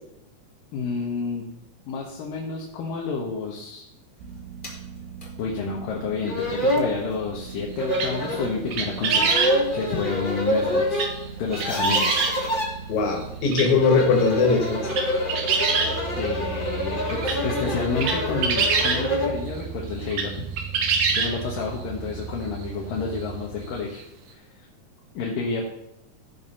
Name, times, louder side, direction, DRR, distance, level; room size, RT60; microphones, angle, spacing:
voice 1, 0.7-1.4 1.9-3.8 5.4-9.3 9.7-11.1 11.4-12.1 16.2-20.3 21.1-24.0 24.3-24.7 25.1-25.6, left 5 dB, 90° left, -2 dB, 3.1 m, -30 dB
sound 1, 4.2-23.8, right 6 dB, 85° right, 3.0 m, -38 dB
sound 2, 4.6-4.8 5.2-5.3 6.0-6.1 6.2-6.9 7.8-8.5 9.0-11.1 11.4-12.7 13.7-19.4, equal, 25° left, 1.2 m, -26 dB
sound 3, 7.9-8.3 8.7-9.6 10.9-11.3 11.5-12.3 13.2-13.3 13.5-13.7 14.2-14.3 14.7-16.3 16.7-16.8 17.1-19.0 20.0-20.3 20.6-21.5 22.2-22.3 22.6-22.7 24.0-24.1, right 5 dB, 65° right, 2.5 m, -24 dB
voice 2, 12.9-14.9, left 4 dB, 60° left, 2 dB, 3.1 m, -20 dB
15.5 x 5.4 x 5.5 m, 0.83 s
omnidirectional pair, 3.8 m